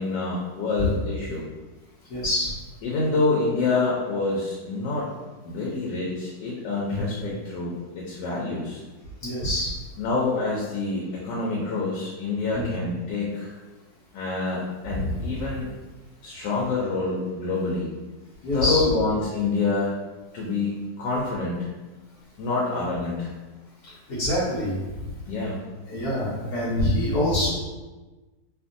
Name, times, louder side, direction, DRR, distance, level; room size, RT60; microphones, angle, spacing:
voice 1, 0.0-1.5 2.8-5.1 5.4-8.8 10.0-13.6 14.1-15.7 16.2-17.9 18.5-20.0 20.3-21.6 22.4-23.3 25.3-25.6 27.4-27.5, left 3 dB, 90° left, -4 dB, 1.2 m, -27 dB
voice 2, 2.1-2.5 6.9-7.0 9.2-9.7 14.9-15.1 18.4-18.8 23.8-24.8 25.1-25.2 25.9-27.5, left 1 dB, 65° left, -10 dB, 1.1 m, -25 dB
2.8 x 2.5 x 2.5 m, 1.2 s
omnidirectional pair, 1.8 m